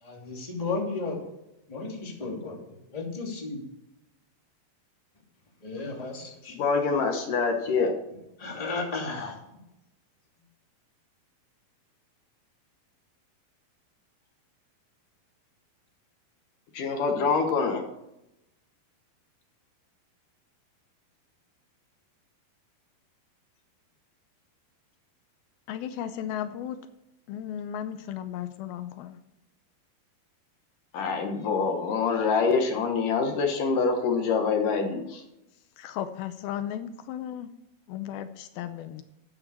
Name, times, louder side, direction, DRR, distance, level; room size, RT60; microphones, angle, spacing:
voice 1, 0.0-1.2 1.7-2.6 2.9-3.6 5.6-6.5 8.4-9.3, left 3 dB, 10° left, -1 dB, 2.3 m, -33 dB
voice 2, 6.5-7.9 16.7-17.8 30.9-35.2, left 5 dB, 65° left, 4 dB, 2.8 m, -25 dB
voice 3, 25.7-26.8 27.3-29.2 35.8-37.5 37.9-39.0, left 10 dB, 85° left, 10 dB, 2.5 m, -35 dB
14.0 x 9.0 x 4.3 m, 0.87 s
omnidirectional pair, 4.4 m